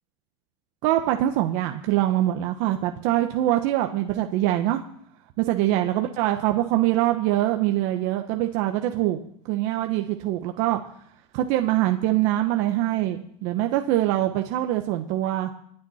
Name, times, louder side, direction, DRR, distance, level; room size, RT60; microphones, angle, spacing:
voice 1, 0.8-4.8 5.4-10.8 11.3-15.5, right 14 dB, 55° right, 5 dB, 1.1 m, -24 dB
23.0 x 9.0 x 4.2 m, 0.67 s
supercardioid pair, 140°, 16 cm